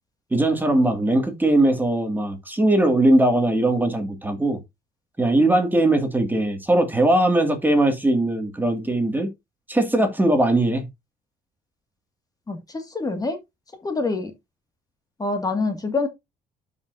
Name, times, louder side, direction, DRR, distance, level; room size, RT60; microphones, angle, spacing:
voice 1, 0.3-4.6 5.2-9.3 9.7-10.9, right 1 dB, 10° right, 2.1 m, -20 dB
voice 2, 12.5-13.4 13.8-14.3 15.2-16.1, left 3 dB, 20° left, 1.9 m, -26 dB
12.0 x 5.4 x 2.6 m
cardioid pair, 110°, 17 cm